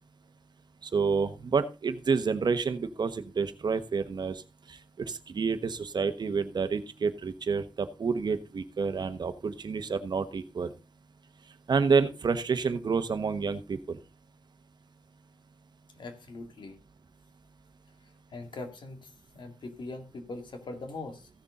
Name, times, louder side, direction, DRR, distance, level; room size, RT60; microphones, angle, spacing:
voice 1, 0.8-4.4 4.7-10.7 11.7-14.0, right 5 dB, 65° right, 11 dB, 1.1 m, -29 dB
voice 2, 16.0-16.8 18.3-21.3, left 2 dB, 90° left, 6 dB, 2.2 m, -41 dB
15.5 x 6.8 x 3.7 m, 0.28 s
wide cardioid pair, 105°, 8 cm